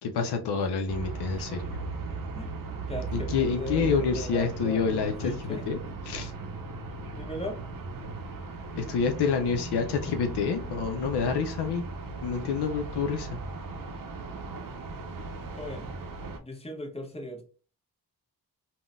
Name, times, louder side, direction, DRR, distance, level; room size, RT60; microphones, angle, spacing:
voice 1, 0.0-1.8 3.1-5.8 6.1-6.3 8.7-11.8 12.2-13.4, left 5 dB, 80° left, 6 dB, 0.5 m, -28 dB
sound 1, 0.9-16.4, right 3 dB, 55° right, 0.6 m, -37 dB
voice 2, 2.9-5.6 7.1-7.6 15.6-15.9 16.4-17.4, left 1 dB, 15° left, 1 dB, 1.0 m, -38 dB
3.7 x 2.2 x 2.4 m, 0.37 s
cardioid pair, 60°, 40 cm